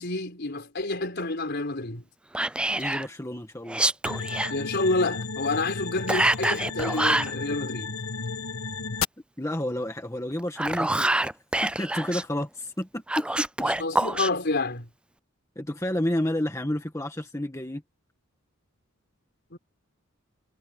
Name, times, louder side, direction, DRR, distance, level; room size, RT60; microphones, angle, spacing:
voice 1, 0.0-2.0 4.5-8.0 13.8-14.9 19.5-19.6, left 2 dB, 55° left, 4.5 m, -28 dB
Whispering, 2.3-3.1 3.7-4.5 6.1-7.3 10.4-12.2 13.1-14.3, right 1 dB, 5° right, 0.3 m, -26 dB
voice 2, 2.8-3.8 9.4-11.3 11.6-13.7 15.6-17.8, left 1 dB, 15° left, 1.8 m, -30 dB
sound 1, 4.0-9.0, left 5 dB, 80° left, 1.4 m, -33 dB
head